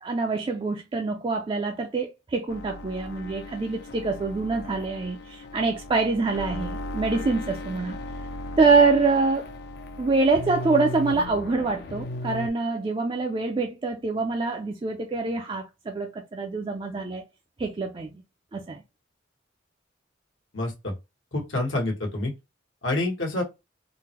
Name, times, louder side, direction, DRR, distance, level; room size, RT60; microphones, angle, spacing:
voice 1, 0.0-8.0 8.6-9.5 10.0-17.2 17.6-18.1 18.5-18.8, right 3 dB, 25° right, 0.3 m, -25 dB
sound 1, 2.5-12.5, left 2 dB, 55° left, 0.5 m, -37 dB
voice 2, 20.5-20.9 21.3-22.3 22.8-23.4, left 2 dB, 80° left, 1.3 m, -27 dB
3.7 x 2.1 x 2.8 m
head